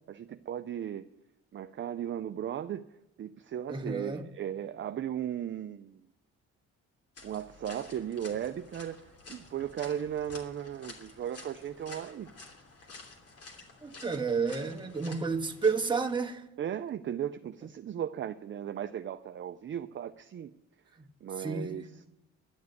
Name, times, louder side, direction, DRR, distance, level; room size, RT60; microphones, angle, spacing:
voice 1, 0.1-1.1 1.5-2.9 3.2-6.0 7.2-12.3 16.6-20.5 21.2-21.9, right 10 dB, 40° right, 0.5 m, -36 dB
voice 2, 3.7-4.2 13.8-16.5 21.0-21.1 21.4-21.8, right 4 dB, 15° right, 1.3 m, -31 dB
sound 1, 7.2-16.2, left 3 dB, 50° left, 3.0 m, -51 dB
12.0 x 7.4 x 9.5 m
cardioid pair, 90°, 30 cm